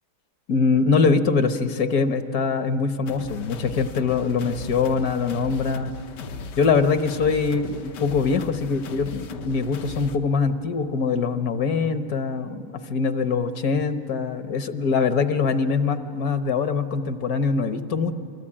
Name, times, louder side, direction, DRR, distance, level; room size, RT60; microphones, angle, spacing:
voice 1, 0.5-5.9 6.6-18.1, left 5 dB, 65° left, 9 dB, 1.3 m, -23 dB
sound 1, 3.1-10.2, left 4 dB, 85° left, 1.6 m, -37 dB
28.0 x 22.0 x 8.7 m, 2.7 s
omnidirectional pair, 1.8 m